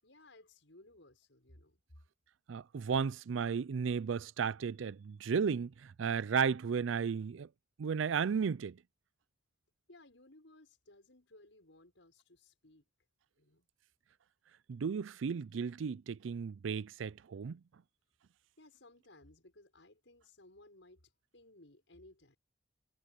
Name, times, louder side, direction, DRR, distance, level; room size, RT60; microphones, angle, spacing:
voice 1, 0.0-1.8 9.9-12.8 13.4-13.7 18.6-22.4, left 2 dB, 75° left, 6.1 m, -60 dB
voice 2, 2.5-7.5 7.8-8.8 14.7-17.6, right 6 dB, 85° right, 0.4 m, -34 dB
head